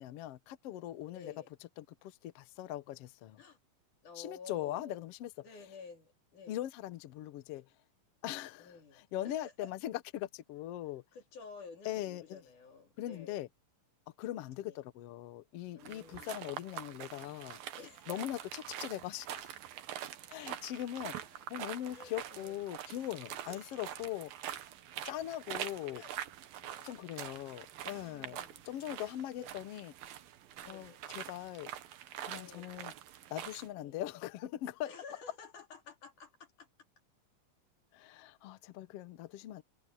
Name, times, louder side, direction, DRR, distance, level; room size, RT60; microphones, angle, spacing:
voice 1, 0.0-1.3 1.8-3.4 4.1-5.3 6.5-7.7 8.2-11.0 11.8-12.4 13.0-13.5 14.2-17.6 18.1-19.5 20.3-24.6 25.0-26.0 26.8-29.9 30.7-31.7 32.2-32.9 33.3-34.9 37.9-39.6, left 13 dB, 85° left, 1.3 m, -41 dB
voice 2, 1.1-1.5 3.4-3.6 4.0-5.0 5.4-6.6 8.6-9.7 11.1-13.4 14.6-14.8 15.7-16.4 17.8-18.2 21.9-22.5 23.5-24.0 25.9-26.1 26.6-27.3 27.8-28.7 29.4-29.5 30.6-31.0 32.3-32.7 33.8-34.0 34.9-36.7, left 5 dB, 60° left, 4.4 m, -52 dB
sound 1, 15.8-33.7, right 11 dB, 85° right, 3.1 m, -45 dB
omnidirectional pair, 4.0 m